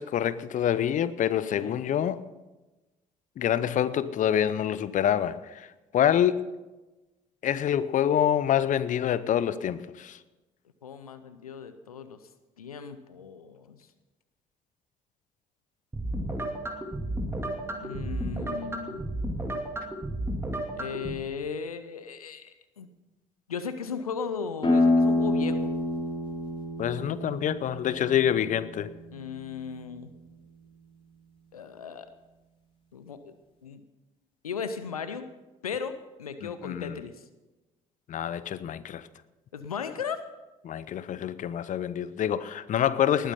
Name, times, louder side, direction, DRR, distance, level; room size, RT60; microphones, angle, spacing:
voice 1, 0.0-2.2 3.4-5.7 5.9-6.5 7.4-10.2 26.8-28.9 36.4-37.0 38.1-39.1 40.6-43.3, left 10 dB, 45° left, 0.7 m, -26 dB
voice 2, 10.8-12.2 12.6-13.8 17.7-19.0 20.7-22.9 23.5-25.7 29.1-30.1 31.5-32.1 32.9-33.3 33.6-33.8 34.4-35.3 35.6-37.2 39.5-40.2, left 6 dB, 85° left, 0.7 m, -36 dB
sound 1, 15.9-21.1, right 1 dB, 15° right, 2.4 m, -33 dB
sound 2, 24.6-30.0, left 2 dB, 30° left, 3.6 m, -28 dB
19.5 x 9.2 x 5.7 m
figure-of-eight pair, 50°, 18 cm